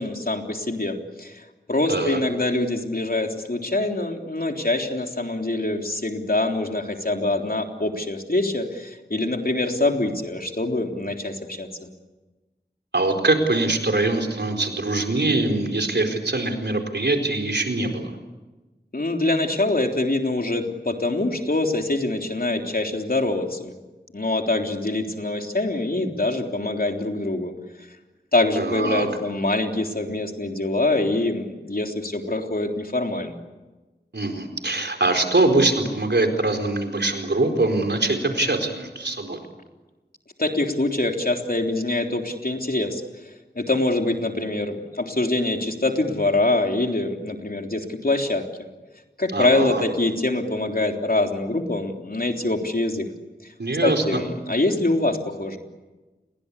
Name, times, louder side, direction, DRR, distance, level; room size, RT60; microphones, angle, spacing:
voice 1, 0.0-1.3 1.7-11.7 18.9-23.7 24.1-27.5 28.3-33.4 40.4-43.0 43.6-48.4 49.2-53.1 53.8-55.6, left 2 dB, 55° left, 3 dB, 3.6 m, -24 dB
voice 2, 1.9-2.2 12.9-18.1 28.6-29.1 34.1-39.4 49.3-49.8 53.6-54.2, right 2 dB, 75° right, 4 dB, 4.5 m, -23 dB
30.0 x 22.0 x 8.4 m, 1.2 s
wide cardioid pair, 40°, 18 cm